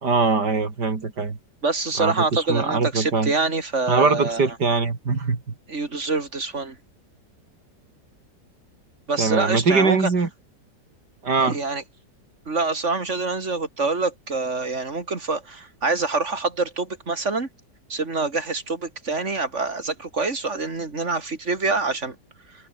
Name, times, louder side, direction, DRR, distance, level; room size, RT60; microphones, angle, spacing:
voice 1, 0.0-1.4 2.0-3.3 3.9-5.4 9.2-10.3 11.2-11.6, right 4 dB, 70° right, 3.6 m, -22 dB
voice 2, 1.6-4.4 5.7-6.8 9.1-10.1 11.4-11.8 12.5-17.5 17.9-22.2, right 3 dB, 40° right, 3.5 m, -25 dB
omnidirectional pair, 1.9 m